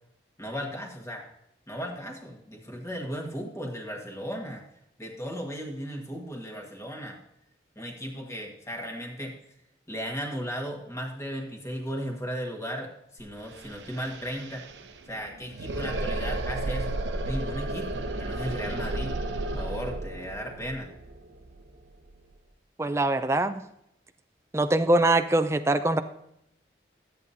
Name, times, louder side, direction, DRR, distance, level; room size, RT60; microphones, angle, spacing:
voice 1, 0.4-1.3 1.7-4.6 5.0-7.2 7.7-9.3 9.9-14.6 15.1-17.0 17.2-19.1 19.5-20.9, equal, 15° left, 1 dB, 1.5 m, -36 dB
sound 1, 13.2-13.3 13.5-22.3, right 2 dB, 90° right, 0.8 m, -33 dB
voice 2, 22.8-23.6 24.5-26.0, right 2 dB, 15° right, 9 dB, 0.4 m, -23 dB
13.0 x 8.7 x 2.7 m, 0.80 s
head